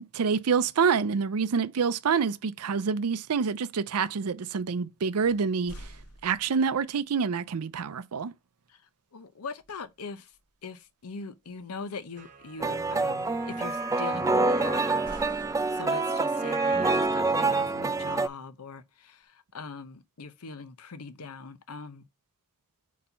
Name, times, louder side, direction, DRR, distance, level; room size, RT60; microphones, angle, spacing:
voice 1, 0.0-5.7 6.2-8.3, right 6 dB, 75° right, 0.5 m, -27 dB
sound 1, 5.2-6.8 9.6-9.9 10.3-10.6 14.6-16.2, equal, 90° left, 1.8 m, -48 dB
voice 2, 9.1-10.3 10.6-22.0, left 4 dB, 75° left, 0.7 m, -41 dB
sound 2, 12.2-17.0, right 6 dB, 35° right, 1.1 m, -43 dB
sound 3, 12.6-18.3, right 3 dB, 15° right, 0.4 m, -26 dB
4.3 x 4.1 x 5.5 m
head